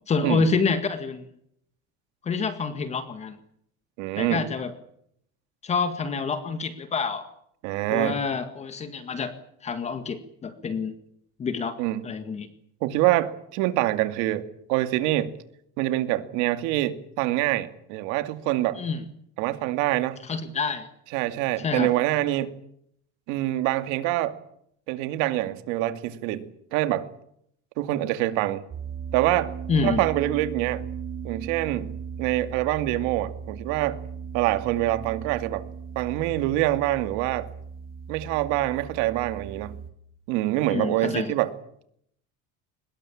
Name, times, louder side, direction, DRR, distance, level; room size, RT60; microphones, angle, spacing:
voice 1, 0.1-1.3 2.2-3.4 4.2-4.7 5.6-7.3 7.9-9.4 9.6-10.9 11.4-11.8 12.0-12.5 18.8-19.0 20.2-20.9 21.6-21.9 29.7-30.1 40.6-41.3, left 4 dB, 20° left, 10 dB, 1.8 m, -27 dB
voice 2, 4.0-4.4 7.6-8.2 11.8-12.0 12.8-15.3 15.8-18.8 19.4-20.2 21.1-22.5 23.3-24.4 24.9-27.1 27.8-28.6 29.1-29.5 29.8-30.8 31.2-31.9 32.2-34.0 34.3-35.7 36.0-37.5 38.1-39.8 40.3-41.5, right 15 dB, 70° right, 10 dB, 2.5 m, -25 dB
sound 1, 28.7-39.9, right 6 dB, 30° right, 2.9 m, -37 dB
24.0 x 21.0 x 8.7 m, 0.71 s
cardioid pair, 175°, 30 cm